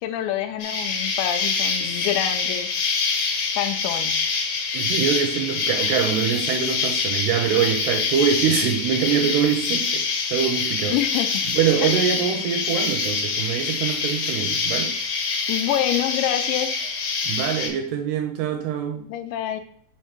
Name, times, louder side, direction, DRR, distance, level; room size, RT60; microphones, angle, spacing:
voice 1, 0.0-2.7 3.6-4.2 10.9-11.4 11.8-12.1 15.5-16.7 19.0-19.6, left 11 dB, 90° left, 3.0 m, -26 dB
Insect, 0.6-17.7, left 5 dB, 65° left, 3.0 m, -25 dB
voice 2, 4.7-11.0 11.5-15.0 17.3-19.1, right 8 dB, 85° right, 2.4 m, -24 dB
7.1 x 2.8 x 5.9 m
omnidirectional pair, 5.1 m